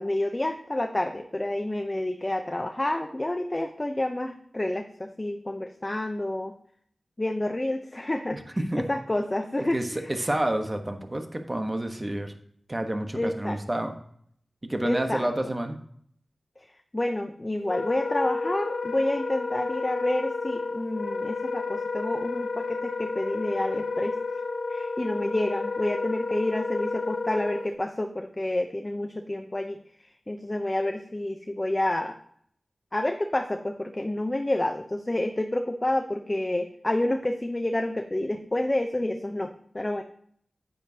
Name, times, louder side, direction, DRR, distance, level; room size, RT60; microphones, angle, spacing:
voice 1, 0.0-6.5 7.2-8.4 8.8-10.1 13.1-13.6 14.8-15.3 16.9-24.2 24.7-29.8 30.3-32.2 32.9-40.0, left 1 dB, 25° left, 5 dB, 0.7 m, -29 dB
voice 2, 8.3-8.8 9.6-12.3 12.7-13.9 14.7-15.8, right 1 dB, 25° right, 5 dB, 1.2 m, -29 dB
Wind instrument woodwind instrument, 17.6-27.7, left 3 dB, 55° left, 1.0 m, -31 dB
10.0 x 9.4 x 2.8 m, 0.64 s
wide cardioid pair, 80°, 0 cm